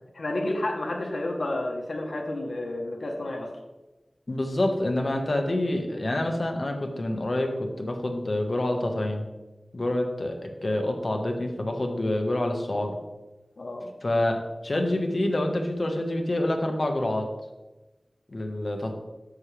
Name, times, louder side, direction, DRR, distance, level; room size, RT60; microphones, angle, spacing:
voice 1, 0.1-3.5 13.6-13.9, left 1 dB, 85° left, 0 dB, 1.3 m, -30 dB
voice 2, 4.3-9.2 9.7-13.0 14.0-17.3 18.3-18.9, left 1 dB, 60° left, 3 dB, 1.5 m, -27 dB
10.0 x 7.4 x 3.4 m, 1.1 s
wide cardioid pair, 60°, 0 cm